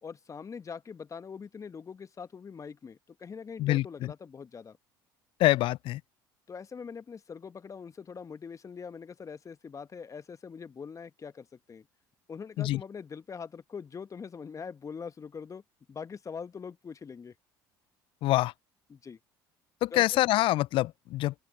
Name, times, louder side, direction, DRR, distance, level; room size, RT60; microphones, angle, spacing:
voice 1, 0.0-4.8 6.5-11.9 12.3-15.6 15.9-17.3 18.9-19.2 19.9-20.2, left 6 dB, 30° left, 1.5 m, -43 dB
voice 2, 3.6-4.1 5.4-6.0 12.6-12.8 18.2-18.5 19.8-21.3, left 16 dB, 50° left, 0.5 m, -25 dB
open air
figure-of-eight pair, 60°, 11 cm